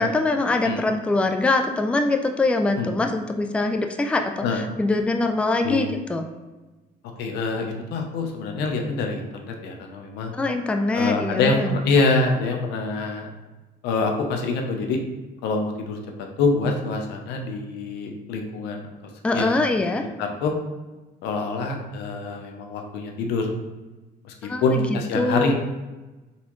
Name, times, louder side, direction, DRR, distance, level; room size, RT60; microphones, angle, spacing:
voice 1, 0.0-6.2 10.3-11.8 19.2-20.0 24.4-25.5, left 2 dB, 5° left, 5 dB, 0.3 m, -23 dB
voice 2, 7.2-10.3 10.9-13.3 13.8-15.0 15.4-16.0 16.4-18.9 19.3-19.5 20.2-20.5 21.2-23.5 24.2-24.3 24.6-25.5, left 3 dB, 85° left, 3 dB, 0.7 m, -25 dB
4.1 x 3.5 x 3.0 m, 1.2 s
cardioid pair, 110°, 17 cm